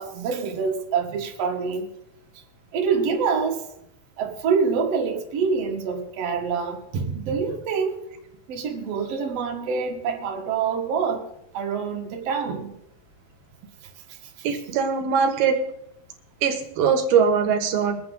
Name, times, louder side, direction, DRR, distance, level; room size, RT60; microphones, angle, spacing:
voice 1, 0.0-1.9 2.7-3.6 4.2-8.0 8.5-11.2 11.5-12.7, right 5 dB, 50° right, 2 dB, 2.2 m, -26 dB
voice 2, 14.4-15.6 16.4-18.0, right 6 dB, 85° right, 6 dB, 3.3 m, -21 dB
22.5 x 8.7 x 3.9 m, 0.79 s
omnidirectional pair, 4.3 m